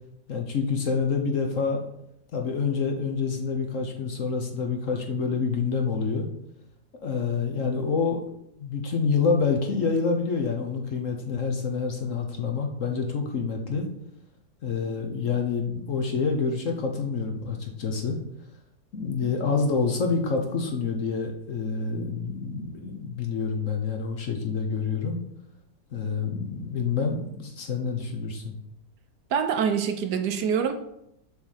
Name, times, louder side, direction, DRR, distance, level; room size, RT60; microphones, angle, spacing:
voice 1, 0.3-1.8 2.3-6.3 6.9-8.2 8.6-13.8 14.6-18.2 18.9-25.2 25.9-28.5, left 5 dB, 50° left, 3 dB, 1.1 m, -27 dB
voice 2, 29.3-30.7, right 7 dB, 70° right, 8 dB, 1.2 m, -25 dB
7.1 x 4.1 x 6.5 m, 0.78 s
omnidirectional pair, 1.9 m